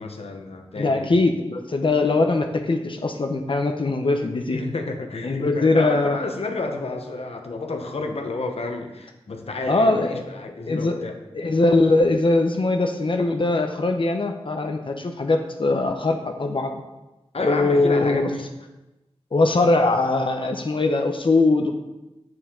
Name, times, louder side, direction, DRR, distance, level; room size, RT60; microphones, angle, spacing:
voice 1, 0.0-1.3 4.5-11.1 17.3-18.5, left 3 dB, 70° left, 4 dB, 1.0 m, -30 dB
voice 2, 0.8-4.6 5.2-6.2 9.7-10.2 10.7-10.9 11.3-16.7 17.4-18.3 19.3-21.7, left 2 dB, 55° left, 4 dB, 0.7 m, -21 dB
8.0 x 7.1 x 3.8 m, 1.0 s
wide cardioid pair, 85°, 11 cm